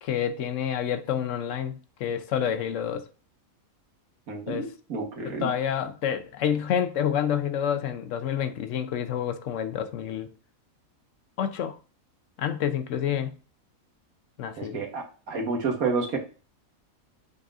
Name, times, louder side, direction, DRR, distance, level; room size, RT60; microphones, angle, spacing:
voice 1, 0.0-3.1 4.5-4.7 5.2-10.3 11.4-11.8 12.4-13.3 14.4-14.8, left 9 dB, 65° left, 0.9 m, -28 dB
voice 2, 4.3-5.5 14.6-16.2, right 4 dB, 90° right, 1.7 m, -30 dB
5.3 x 4.0 x 2.4 m
omnidirectional pair, 1.5 m